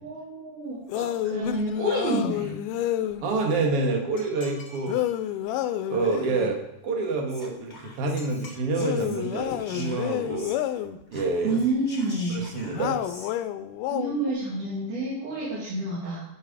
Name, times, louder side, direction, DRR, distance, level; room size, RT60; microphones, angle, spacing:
voice 1, 0.0-2.6 11.4-12.5 13.9-16.2, right 2 dB, 75° right, -9 dB, 3.8 m, -29 dB
sound 1, 0.9-3.3 4.9-6.5 8.7-11.0 12.8-14.3, left 12 dB, 90° left, 2.2 m, -29 dB
voice 2, 3.2-5.0 5.9-10.5 11.1-11.6 12.3-13.0, right 3 dB, 55° right, 2 dB, 2.1 m, -27 dB
sound 2, 4.2-5.2 8.2-8.6, left 3 dB, 70° left, 2.7 m, -47 dB
Whispering, 7.3-10.8 11.1-13.3, left 2 dB, 25° left, 1.1 m, -46 dB
10.5 x 5.8 x 4.9 m, 0.88 s
omnidirectional pair, 3.6 m